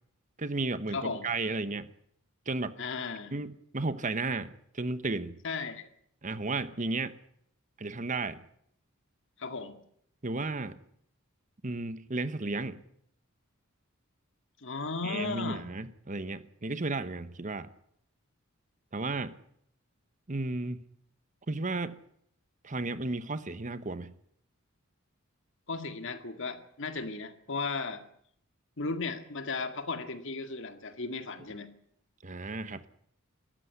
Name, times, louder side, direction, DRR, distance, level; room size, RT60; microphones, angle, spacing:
voice 1, 0.4-1.9 2.5-2.7 3.3-5.4 6.2-7.2 7.8-8.4 10.2-10.7 11.6-12.8 15.0-17.7 18.9-19.4 20.3-20.8 21.5-22.0 22.6-24.1 32.2-32.8, right 3 dB, 35° right, 13 dB, 1.0 m, -33 dB
voice 2, 0.9-1.3 2.8-3.3 5.4-5.9 9.4-9.8 14.6-15.6 25.7-28.0 28.8-31.7, left 4 dB, 60° left, 8 dB, 2.0 m, -35 dB
21.0 x 14.0 x 9.8 m, 0.70 s
head